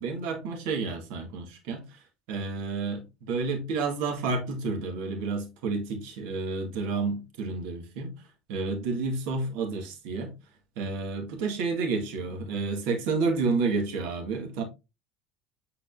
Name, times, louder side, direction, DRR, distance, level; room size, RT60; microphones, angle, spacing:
voice 1, 0.0-2.0 2.3-8.1 8.5-10.3 10.8-14.6, right 4 dB, 75° right, 2.0 m, -30 dB
9.0 x 4.1 x 2.7 m
cardioid pair, 145°, 0 cm